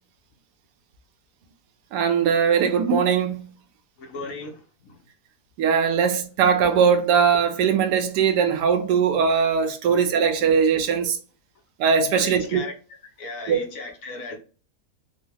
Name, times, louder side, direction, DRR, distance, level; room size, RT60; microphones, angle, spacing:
voice 1, 1.9-3.4 5.6-11.2 11.8-12.6 13.5-13.6, right 6 dB, 80° right, 1.2 m, -20 dB
voice 2, 4.0-4.5 5.9-6.0 9.9-10.0 12.1-12.7 13.2-14.4, left 3 dB, 65° left, 1.0 m, -35 dB
3.9 x 2.2 x 2.7 m
omnidirectional pair, 1.8 m